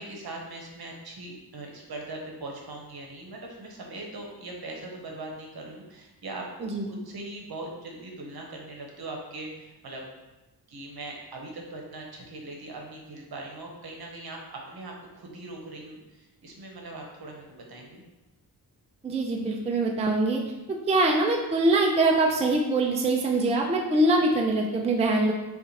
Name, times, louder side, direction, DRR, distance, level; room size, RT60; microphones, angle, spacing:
voice 1, 0.0-10.0 10.7-18.0, right 2 dB, 65° right, 0 dB, 1.0 m, -40 dB
voice 2, 6.6-6.9 19.0-20.4 20.7-25.3, right 2 dB, 15° right, 0 dB, 0.4 m, -23 dB
6.7 x 2.5 x 2.8 m, 1.1 s
wide cardioid pair, 145°, 40 cm